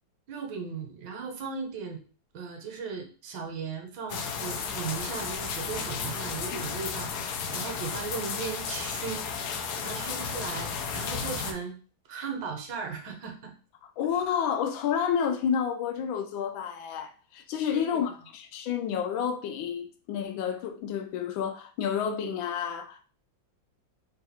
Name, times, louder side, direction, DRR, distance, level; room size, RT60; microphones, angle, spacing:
voice 1, 0.3-2.0 2.3-9.3 9.7-11.7 12.1-13.5 17.7-18.0, right 5 dB, 70° right, 1.5 m, -37 dB
sound 1, 4.1-11.5, left 6 dB, 70° left, 1.0 m, -33 dB
voice 2, 13.8-23.0, left 8 dB, 90° left, 1.3 m, -30 dB
3.7 x 2.3 x 4.2 m
omnidirectional pair, 2.1 m